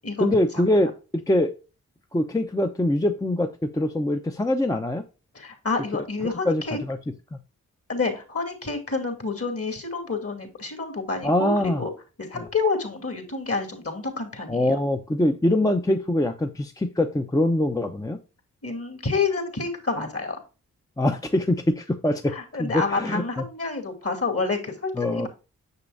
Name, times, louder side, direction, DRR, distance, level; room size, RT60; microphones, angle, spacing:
voice 1, 0.2-1.5 2.1-5.0 5.9-6.0 6.5-7.0 7.3-7.4 11.2-11.8 12.3-12.5 14.5-18.2 21.0-23.5 25.0-25.3, left 1 dB, 10° left, 5 dB, 0.7 m, -24 dB
voice 2, 5.3-6.8 7.9-11.9 12.2-14.7 18.6-20.4 22.3-25.3, left 4 dB, 45° left, 5 dB, 2.4 m, -28 dB
6.7 x 6.1 x 2.6 m, 0.32 s
supercardioid pair, 40°, 34 cm